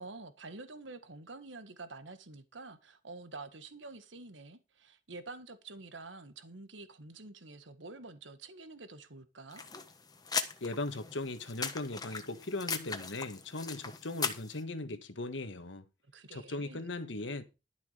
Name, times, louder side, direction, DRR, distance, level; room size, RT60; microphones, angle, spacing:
voice 1, 0.0-9.6 16.1-16.9, right 3 dB, 85° right, 1.6 m, -48 dB
sound 1, 9.5-14.6, left 5 dB, 20° left, 1.3 m, -39 dB
voice 2, 10.6-15.8 16.3-17.4, left 2 dB, 85° left, 1.5 m, -38 dB
12.0 x 7.1 x 5.0 m
head